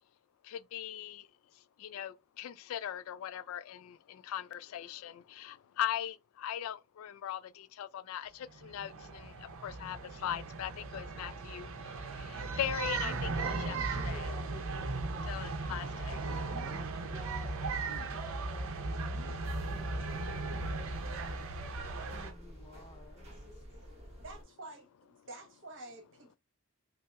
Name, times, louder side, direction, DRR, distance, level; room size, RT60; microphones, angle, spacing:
voice 1, 0.4-1.3 1.5-13.3 13.6-13.8 14.0-14.3 15.3-16.2, left 10 dB, 90° left, 0.3 m, -40 dB
sound 1, 8.5-22.3, right 3 dB, 85° right, 0.6 m, -37 dB
voice 2, 13.0-21.5 22.1-23.6, equal, 15° left, 0.4 m, -54 dB
sound 2, 19.4-24.4, equal, 30° right, 1.7 m, -51 dB
voice 3, 24.2-24.9 25.3-26.4, right 2 dB, 65° right, 1.1 m, -48 dB
5.3 x 2.0 x 2.3 m
head